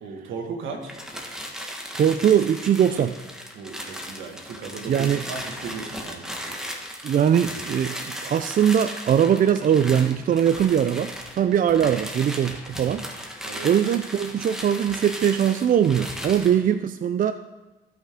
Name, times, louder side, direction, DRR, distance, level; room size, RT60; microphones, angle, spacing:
voice 1, 0.0-1.0 3.5-6.9 13.4-13.7, right 4 dB, 75° right, 3 dB, 1.7 m, -36 dB
sound 1, 0.8-16.6, equal, 5° right, 1.4 m, -36 dB
voice 2, 1.9-3.2 4.9-5.3 7.0-13.0 13.6-17.3, right 9 dB, 45° right, 10 dB, 0.4 m, -21 dB
16.0 x 5.7 x 3.6 m, 1.2 s
cardioid pair, 90°, 20 cm